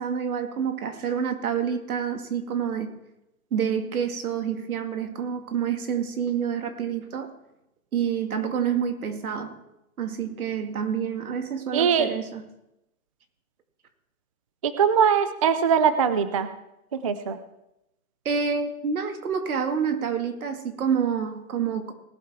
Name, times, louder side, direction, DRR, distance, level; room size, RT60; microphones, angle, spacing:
voice 1, 0.0-3.0 3.5-7.3 7.9-9.6 10.0-12.4 18.2-21.9, right 7 dB, 85° right, 6 dB, 2.3 m, -28 dB
voice 2, 11.7-12.1 14.6-16.5 16.9-17.4, right 7 dB, 25° right, 12 dB, 0.4 m, -21 dB
19.0 x 12.0 x 3.7 m, 0.89 s
hypercardioid pair, 155°, 42 cm